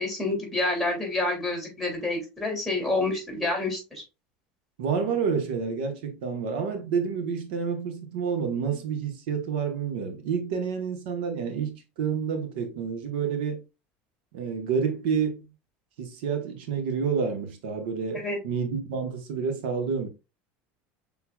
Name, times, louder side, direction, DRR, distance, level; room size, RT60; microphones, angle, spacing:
voice 1, 0.0-4.0 18.1-18.4, left 2 dB, ahead, 2.6 m, -28 dB
voice 2, 4.8-13.6 14.3-15.5 16.0-20.1, right 6 dB, 85° right, 1.1 m, -29 dB
5.9 x 3.8 x 2.3 m
supercardioid pair, 135°, 5 cm